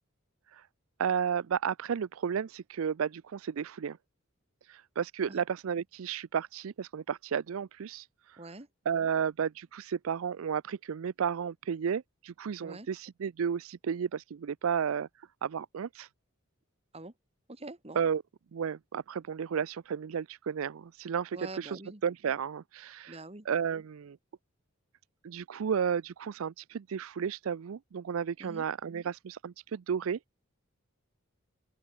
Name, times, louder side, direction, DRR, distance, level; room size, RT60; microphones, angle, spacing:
voice 1, 1.0-4.0 4.7-8.4 8.9-15.1 15.4-16.1 18.0-18.2 18.5-23.2 23.5-24.2 25.2-30.2, right 7 dB, 80° right, 0.4 m, -33 dB
voice 2, 8.4-8.7 12.6-12.9 16.9-17.1 17.5-18.0 21.3-22.0 23.1-23.5 28.4-28.6, right 2 dB, 30° right, 2.0 m, -45 dB
open air
head